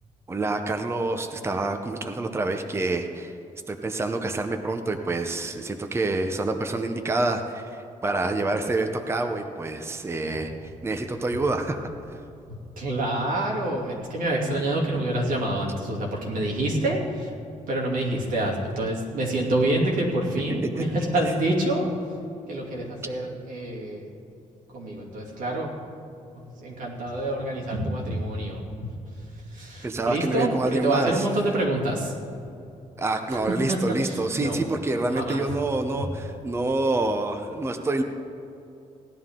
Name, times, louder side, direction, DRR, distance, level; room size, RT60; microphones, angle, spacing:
voice 1, 0.3-3.3 3.7-10.5 10.8-12.2 20.6-20.8 21.2-21.3 29.8-31.3 33.0-38.0, right 2 dB, 20° right, 5 dB, 0.7 m, -27 dB
voice 2, 12.5-17.3 17.7-21.9 22.5-24.0 24.7-25.7 26.3-28.9 29.5-32.1 33.7-33.8 34.0-34.6 35.1-35.4, right 1 dB, 85° right, -2 dB, 2.7 m, -27 dB
17.5 x 11.0 x 3.7 m, 2.7 s
cardioid pair, 120°, 14 cm